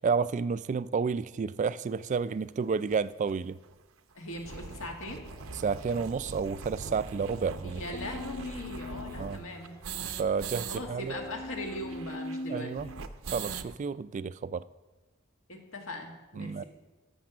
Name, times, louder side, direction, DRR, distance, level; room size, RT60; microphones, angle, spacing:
voice 1, 0.0-3.6 5.6-7.8 9.2-9.4 10.2-11.2 12.5-12.9 13.3-14.6 16.4-16.6, right 5 dB, 35° right, 16 dB, 0.3 m, -31 dB
sound 1, 2.1-2.2 2.9-3.0 3.2-3.3 3.6-3.7 4.1-10.8 11.1-11.2 11.4-13.7, right 5 dB, 80° right, 0.7 m, -41 dB
voice 2, 4.2-5.2 7.6-9.8 10.7-12.7 15.5-16.6, left 1 dB, 70° left, 2 dB, 1.8 m, -40 dB
dark strings, 4.7-12.2, equal, 20° left, 0.8 m, -53 dB
sound 2, 7.9-9.4 11.1-13.0, left 2 dB, 50° left, 1.0 m, -40 dB
13.5 x 6.3 x 6.0 m, 1.2 s
head